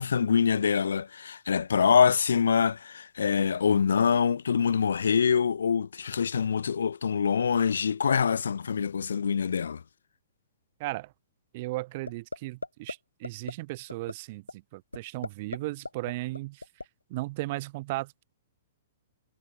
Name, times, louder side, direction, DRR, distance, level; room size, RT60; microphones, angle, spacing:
voice 1, 0.0-9.8, left 6 dB, 70° left, 0.7 m, -25 dB
voice 2, 10.8-11.1 11.5-16.6 17.1-18.2, right 20 dB, 45° right, 1.7 m, -36 dB
sound 1, 12.1-12.4 12.6-12.9 13.2-13.5 13.9-14.1 14.5-14.6 14.9-15.6 15.8-16.8, left 2 dB, 85° left, 2.7 m, -35 dB
figure-of-eight pair, 115°, 0 cm